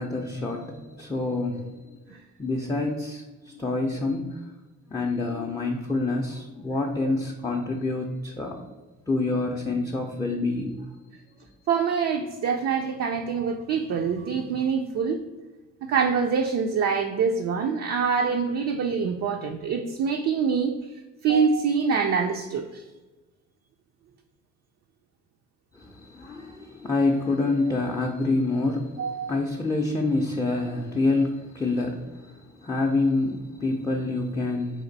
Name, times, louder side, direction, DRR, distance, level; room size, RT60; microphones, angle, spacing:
voice 1, 0.0-2.0 2.4-4.4 4.9-8.6 9.1-10.8 25.7-34.8, left 2 dB, 10° left, -1 dB, 0.4 m, -27 dB
voice 2, 11.7-15.2 15.9-20.8 21.2-22.8 29.0-29.3, right 6 dB, 55° right, 3 dB, 0.4 m, -25 dB
4.2 x 2.6 x 3.9 m, 1.2 s
cardioid pair, 90°, 30 cm